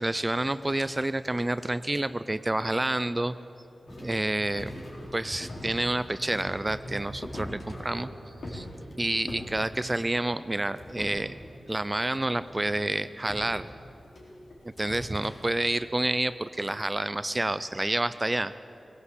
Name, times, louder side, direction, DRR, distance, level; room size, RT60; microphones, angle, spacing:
voice 1, 0.0-3.3 4.0-4.8 5.1-8.1 8.5-8.7 9.0-11.3 11.7-13.7 14.8-18.5, right 1 dB, 20° right, 14 dB, 0.4 m, -29 dB
sound 1, 3.9-10.3 10.7-12.0 12.4-12.6 13.2-15.3, equal, 65° left, 4.2 m, -42 dB
19.0 x 16.5 x 8.2 m, 2.8 s
wide cardioid pair, 130°, 0 cm